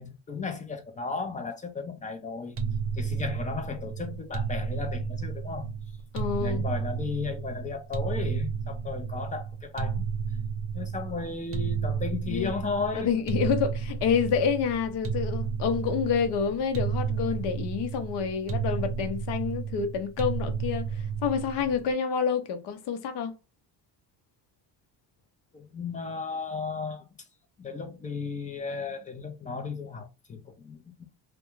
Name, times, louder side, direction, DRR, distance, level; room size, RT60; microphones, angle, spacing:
voice 1, 0.0-2.6 3.0-5.7 6.4-10.1 10.7-13.1 25.5-27.0 27.6-30.8, left 4 dB, 20° left, 0.3 m, -34 dB
sound 1, 2.6-21.9, right 6 dB, 30° right, 0.5 m, -32 dB
voice 2, 6.1-6.6 12.3-12.5 12.9-20.9 21.2-23.3, left 7 dB, 65° left, 0.7 m, -28 dB
2.3 x 2.2 x 2.9 m
cardioid pair, 145°, 44 cm